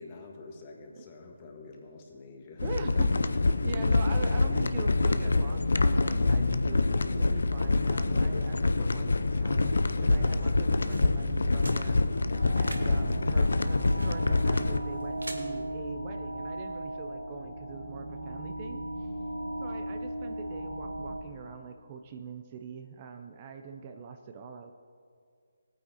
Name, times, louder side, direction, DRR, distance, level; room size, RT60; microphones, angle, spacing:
voice 1, 0.0-2.6, left 3 dB, 30° left, 1 dB, 1.5 m, -47 dB
sound 1, 2.6-14.8, left 3 dB, 70° left, 0.5 m, -26 dB
voice 2, 2.6-19.1 19.6-24.7, right 5 dB, 30° right, 5 dB, 0.5 m, -43 dB
sound 2, 10.4-15.4, right 1 dB, 85° right, 1.3 m, -48 dB
sound 3, 12.3-21.2, right 1 dB, 65° right, 1.6 m, -37 dB
17.5 x 9.0 x 2.8 m, 2.2 s
figure-of-eight pair, 150°, 0 cm